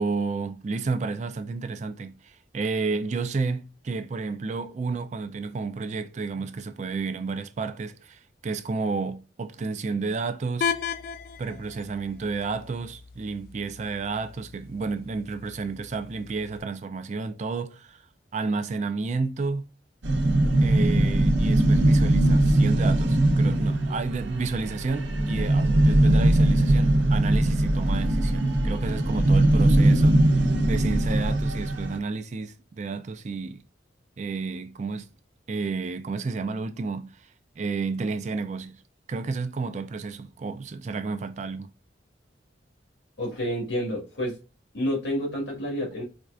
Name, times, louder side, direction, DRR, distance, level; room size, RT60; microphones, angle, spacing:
voice 1, 0.0-10.7 11.4-18.0 18.3-19.7 20.6-33.6 34.2-35.1 35.5-38.8 39.1-41.7, right 4 dB, 40° right, 0.3 m, -31 dB
sound 1, 10.6-16.6, left 7 dB, 55° left, 0.3 m, -36 dB
sound 2, 20.0-32.0, right 1 dB, 75° right, 0.7 m, -21 dB
voice 2, 43.2-44.3 44.7-46.0, equal, 80° left, 1.8 m, -29 dB
4.3 x 2.4 x 2.4 m
head